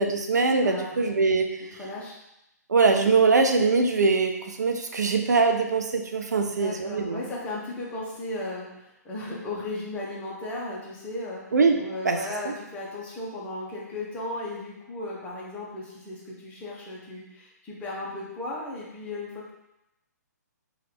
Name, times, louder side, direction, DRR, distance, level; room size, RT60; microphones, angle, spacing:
voice 1, 0.0-1.6 2.7-7.3 11.5-12.2 12.4-12.5, right 4 dB, 75° right, 4 dB, 0.4 m, -22 dB
voice 2, 0.6-0.9 1.8-2.2 6.4-11.4 11.8-19.5, left 2 dB, 15° left, -5 dB, 0.7 m, -36 dB
3.0 x 2.4 x 3.3 m, 0.89 s
figure-of-eight pair, 130°, 9 cm